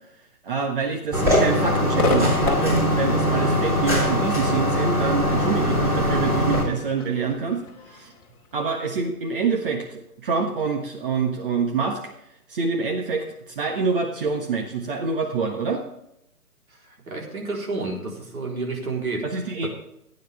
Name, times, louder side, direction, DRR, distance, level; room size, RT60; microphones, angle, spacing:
voice 1, 0.4-8.1 8.5-12.0 12.5-15.8 19.2-19.7, right 5 dB, 35° right, 2 dB, 1.5 m, -26 dB
sound 1, 1.1-6.6, left 1 dB, 5° right, 3.4 m, -21 dB
Crowd / Fireworks, 2.0-9.3, left 3 dB, 25° left, 2.2 m, -33 dB
voice 2, 16.8-19.7, right 3 dB, 65° right, -1 dB, 4.2 m, -31 dB
16.5 x 9.5 x 3.5 m, 0.80 s
figure-of-eight pair, 140°, 46 cm